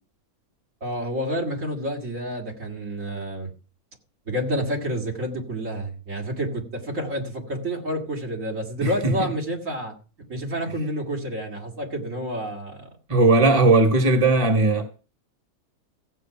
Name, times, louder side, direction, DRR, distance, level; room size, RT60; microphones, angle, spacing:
voice 1, 0.8-3.5 4.3-9.9 10.3-12.9, equal, 60° right, 2.8 m, -29 dB
voice 2, 8.8-9.3 13.1-14.8, right 2 dB, 20° right, 1.6 m, -18 dB
15.0 x 8.1 x 5.8 m
omnidirectional pair, 1.5 m